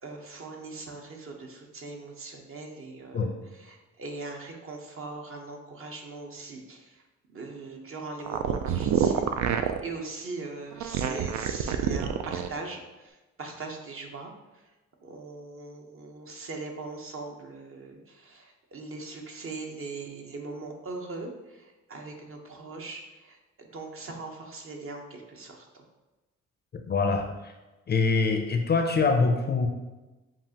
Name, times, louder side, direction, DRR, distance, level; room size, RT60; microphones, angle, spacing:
voice 1, 0.0-7.0 7.3-14.7 15.0-25.8, right 3 dB, 45° right, 2 dB, 0.9 m, -41 dB
sound 1, 8.2-9.8 10.7-12.5, right 9 dB, 70° right, 0.4 m, -27 dB
voice 2, 26.9-27.5 27.9-29.7, left 4 dB, 35° left, 5 dB, 0.5 m, -24 dB
7.2 x 2.5 x 2.8 m, 1.1 s
cardioid pair, 90°, 30 cm